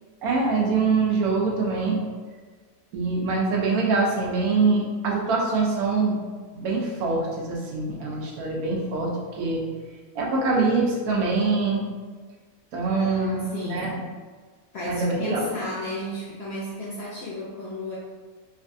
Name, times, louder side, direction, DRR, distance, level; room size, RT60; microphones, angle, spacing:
voice 1, 0.2-2.0 2.9-6.2 6.5-9.6 10.1-11.8 12.7-13.4 13.7-13.9 14.9-15.4, right 4 dB, 80° right, -2 dB, 1.1 m, -24 dB
voice 2, 12.8-13.9 14.7-18.0, left 1 dB, 65° left, -5 dB, 0.6 m, -34 dB
3.1 x 2.5 x 2.5 m, 1.5 s
omnidirectional pair, 1.6 m